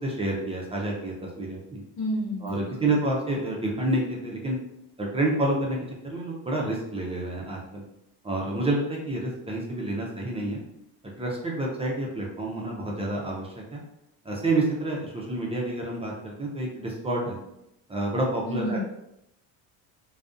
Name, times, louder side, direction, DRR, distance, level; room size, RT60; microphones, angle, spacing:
voice 1, 0.0-1.8 2.4-4.6 5.0-5.8 6.0-7.8 8.2-10.6 11.2-13.8 14.2-17.4 17.9-18.8, right 2 dB, 15° right, -3 dB, 0.5 m, -28 dB
voice 2, 2.0-2.9 18.4-18.9, equal, 90° left, -3 dB, 1.0 m, -31 dB
2.4 x 2.3 x 2.4 m, 0.83 s
supercardioid pair, 95°, 40 cm